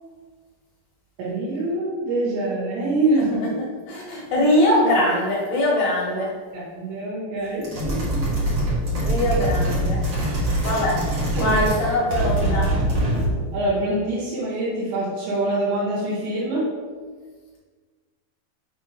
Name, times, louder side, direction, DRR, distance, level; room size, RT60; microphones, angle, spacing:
voice 1, 1.2-3.4 6.5-8.3 11.3-11.6 12.1-12.6 13.5-16.7, right 2 dB, 80° right, -6 dB, 3.2 m, -25 dB
voice 2, 3.3-6.3 9.0-10.0 10.6-11.0 11.4-12.7, left 1 dB, 65° left, -5 dB, 1.8 m, -22 dB
sound 1, 7.6-11.8 12.1-13.4, right 1 dB, 65° right, 1.1 m, -23 dB
6.4 x 3.2 x 4.8 m, 1.5 s
omnidirectional pair, 4.4 m